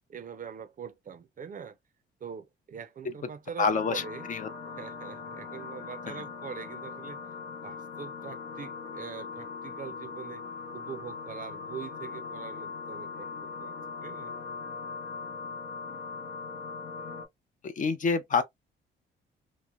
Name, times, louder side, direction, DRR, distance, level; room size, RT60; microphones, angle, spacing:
voice 1, 0.1-1.8 2.2-4.3 4.8-7.2 7.6-10.4 10.7-14.3, right 7 dB, 45° right, 0.5 m, -43 dB
voice 2, 3.6-4.0 4.3-4.5 6.0-6.2 17.6-18.4, left 5 dB, 40° left, 0.5 m, -27 dB
sound 1, 3.7-17.3, left 5 dB, 75° left, 1.0 m, -40 dB
3.0 x 2.1 x 2.3 m
cardioid pair, 90°, 20 cm